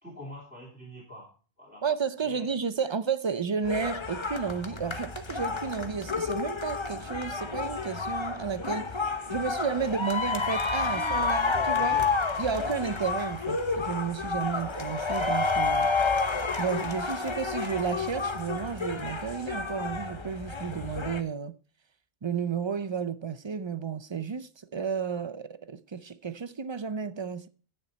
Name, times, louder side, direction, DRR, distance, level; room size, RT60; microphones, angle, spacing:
voice 1, 0.0-1.3 1.6-1.8 2.2-2.5 9.8-10.2 10.9-12.1, left 1 dB, 5° right, 3.4 m, -45 dB
voice 2, 1.8-9.0 9.3-12.0 12.4-15.9 16.6-21.6 22.2-27.5, right 6 dB, 40° right, 0.4 m, -32 dB
sound 1, 3.6-21.2, left 4 dB, 25° left, 0.9 m, -30 dB
10.5 x 9.1 x 4.1 m
omnidirectional pair, 1.2 m